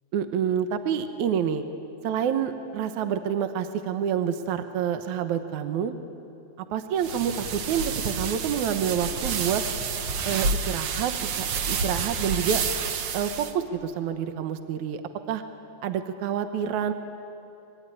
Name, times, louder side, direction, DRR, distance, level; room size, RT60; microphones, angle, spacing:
voice 1, 0.1-1.7 2.0-5.9 6.7-9.6 10.3-12.6 13.1-15.0 15.3-15.4 15.8-16.9, right 8 dB, 75° right, 8 dB, 2.4 m, -28 dB
sound 1, 7.0-13.5, right 5 dB, 60° right, 1.6 m, -29 dB
25.0 x 22.5 x 10.0 m, 2.6 s
omnidirectional pair, 3.5 m